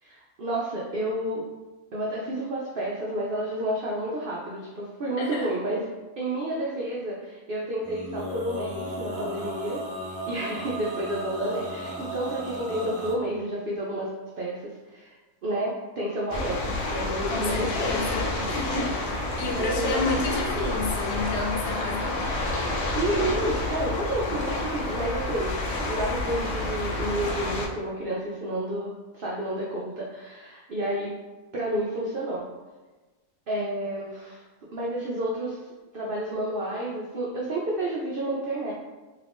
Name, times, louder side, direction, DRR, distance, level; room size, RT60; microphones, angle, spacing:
voice 1, 0.0-1.5 1.9-5.8 6.2-14.1 14.4-15.2 15.4-16.6 16.9-17.9 18.3-18.9 19.1-20.2 22.9-25.5 25.9-31.1 31.5-32.5 33.5-34.4 34.7-35.6 35.9-38.7, right 1 dB, 75° right, -5 dB, 0.5 m, -30 dB
voice 2, 5.2-5.5 17.3-18.9 19.4-22.3, left 3 dB, 75° left, -1 dB, 1.2 m, -30 dB
Male singing, 7.8-13.2, equal, 20° right, 0.4 m, -35 dB
sound 1, 16.3-27.7, left 2 dB, 60° left, 0.8 m, -29 dB
2.8 x 2.5 x 3.4 m, 1.2 s
omnidirectional pair, 1.6 m